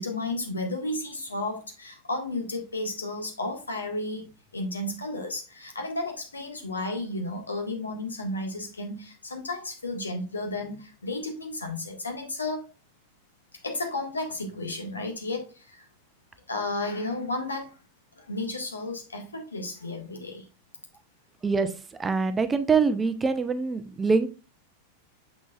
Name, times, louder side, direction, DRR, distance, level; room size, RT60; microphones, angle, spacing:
voice 1, 0.0-12.7 13.6-15.9 16.5-17.8 18.2-20.4, left 2 dB, 75° left, 3 dB, 1.7 m, -33 dB
voice 2, 22.0-24.3, right 4 dB, 15° right, 10 dB, 0.7 m, -24 dB
6.9 x 6.2 x 2.4 m, 0.31 s
figure-of-eight pair, 90°, 0 cm